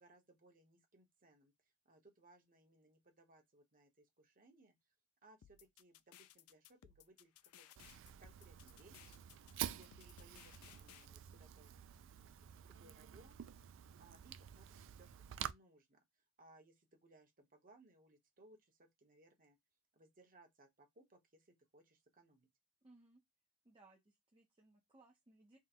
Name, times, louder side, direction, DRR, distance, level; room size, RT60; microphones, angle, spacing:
voice 1, 0.0-4.8 5.2-7.8 8.2-9.3 9.6-13.7 14.0-16.0 16.4-19.6 19.9-22.5, right 2 dB, 40° right, 1.0 m, -66 dB
sound 1, 5.4-11.1, left 11 dB, 70° left, 0.3 m, -62 dB
Fire, 7.8-15.5, right 10 dB, 60° right, 0.3 m, -49 dB
voice 2, 22.8-23.2 23.6-25.6, right 2 dB, 25° right, 0.7 m, -66 dB
3.6 x 2.2 x 4.3 m
head